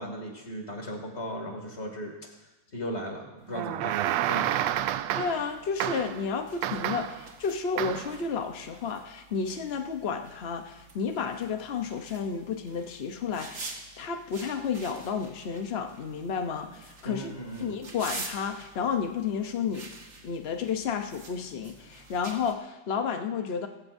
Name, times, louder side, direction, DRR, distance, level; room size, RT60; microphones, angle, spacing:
voice 1, 0.0-2.1 2.7-4.0 4.3-4.5 17.0-17.8, equal, 30° left, 1 dB, 2.7 m, -36 dB
sound 1, 3.5-5.5 5.8-6.2 6.6-7.2 7.8-8.2, right 12 dB, 80° right, 1.5 m, -29 dB
voice 2, 5.1-17.3 17.6-19.9 20.2-23.7, left 6 dB, 85° left, 5 dB, 0.5 m, -32 dB
Footsteps on tiled floor, 5.2-22.5, right 3 dB, 35° right, 1.6 m, -47 dB
20.5 x 15.5 x 2.7 m, 1.1 s
omnidirectional pair, 2.4 m